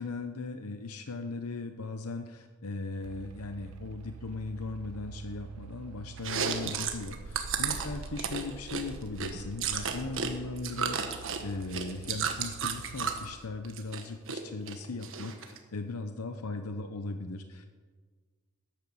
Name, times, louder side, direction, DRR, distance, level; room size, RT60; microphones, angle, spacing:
voice 1, 0.0-17.7, left 3 dB, 85° left, 7 dB, 0.8 m, -38 dB
sound 1, 3.0-13.3, right 4 dB, 85° right, 0.7 m, -46 dB
Chewing mastication, 6.2-10.3 10.6-13.2 13.6-14.4 14.7-15.6, right 7 dB, 65° right, 1.4 m, -33 dB
13.0 x 10.5 x 7.1 m, 1.5 s
head